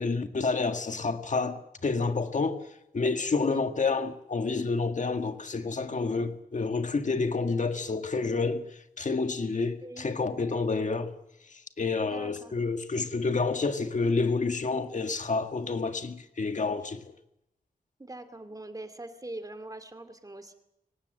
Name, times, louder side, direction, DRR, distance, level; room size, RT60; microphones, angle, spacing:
voice 1, 0.0-2.6 2.9-8.6 9.0-11.1 11.8-17.0, left 4 dB, 55° left, 1.8 m, -29 dB
voice 2, 12.1-12.5 18.0-20.5, right 2 dB, 25° right, 2.4 m, -42 dB
23.5 x 18.5 x 7.8 m
wide cardioid pair, 100°, 16 cm